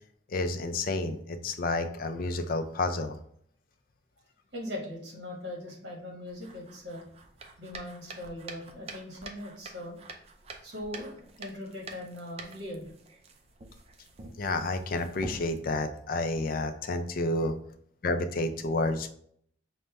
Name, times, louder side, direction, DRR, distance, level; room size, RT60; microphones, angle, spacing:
voice 1, 0.3-3.2 14.4-17.5 18.0-19.1, left 2 dB, 50° left, 8 dB, 0.4 m, -30 dB
voice 2, 4.5-7.0 7.6-10.0 10.6-12.9, left 1 dB, 60° right, -1 dB, 1.2 m, -40 dB
sound 1, 6.3-15.6, right 3 dB, 35° right, 0.4 m, -47 dB
5.3 x 2.1 x 3.2 m, 0.64 s
head